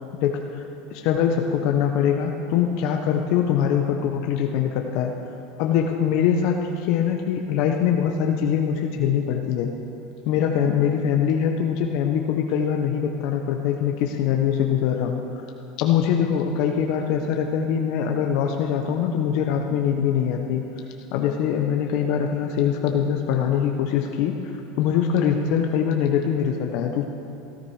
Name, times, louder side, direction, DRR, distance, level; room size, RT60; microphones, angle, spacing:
voice 1, 0.9-5.1 5.6-9.7 10.2-15.2 15.8-20.6 21.1-24.4 24.8-27.0, left 8 dB, 60° left, 3 dB, 1.1 m, -23 dB
16.5 x 14.5 x 4.9 m, 2.7 s
supercardioid pair, 130°, 0 cm